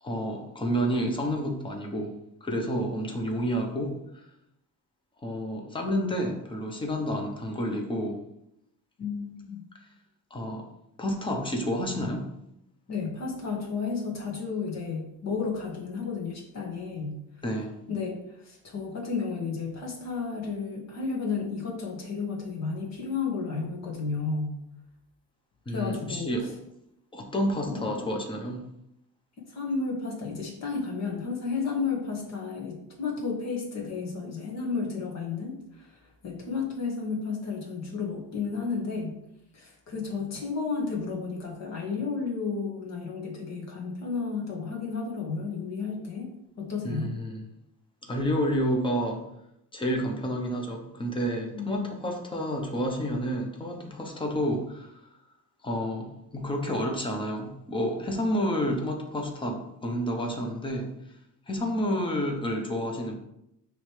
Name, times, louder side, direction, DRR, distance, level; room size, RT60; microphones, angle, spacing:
voice 1, 0.0-2.1 2.4-4.2 5.2-8.2 10.3-10.6 11.0-12.3 17.4-17.7 25.7-26.5 27.1-28.6 46.8-47.4 48.0-49.2 49.7-55.0 55.6-60.9 61.5-63.1, equal, 15° left, 2 dB, 0.9 m, -30 dB
voice 2, 9.0-9.6 12.9-17.2 17.9-24.6 25.7-26.3 27.7-28.0 29.5-39.1 39.5-46.3 46.6-47.1 51.5-51.9, left 4 dB, 45° left, 0 dB, 1.7 m, -32 dB
9.7 x 3.3 x 3.3 m, 0.82 s
cardioid pair, 155°, 37 cm